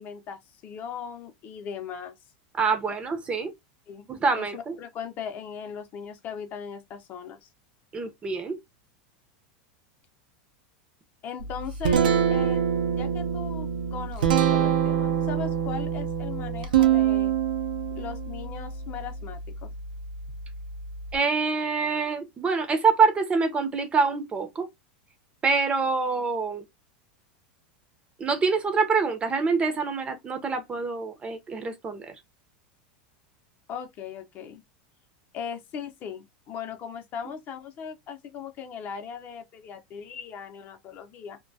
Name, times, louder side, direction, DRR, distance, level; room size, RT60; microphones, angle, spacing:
voice 1, 0.0-2.2 3.9-4.1 4.4-7.5 11.2-12.0 12.3-12.6 12.9-17.3 17.9-19.7 33.7-34.6 35.3-41.4, left 7 dB, 40° left, 0.6 m, -38 dB
voice 2, 2.6-3.5 4.1-4.7 7.9-8.6 21.1-24.7 25.4-26.6 28.2-32.1, right 4 dB, 25° right, 0.6 m, -25 dB
Guitar, 11.4-21.2, right 8 dB, 80° right, 0.5 m, -26 dB
2.2 x 2.2 x 2.6 m
hypercardioid pair, 110°, 5 cm